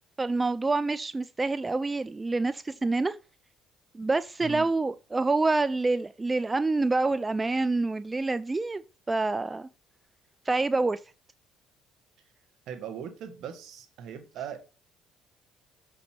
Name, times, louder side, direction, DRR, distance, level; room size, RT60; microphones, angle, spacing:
voice 1, 0.2-3.2 3.9-8.8 9.1-9.7 10.5-11.0, right 3 dB, 20° right, 0.4 m, -27 dB
voice 2, 12.7-14.6, right 8 dB, 70° right, 1.6 m, -39 dB
7.0 x 5.3 x 4.5 m
supercardioid pair, 80°, 0 cm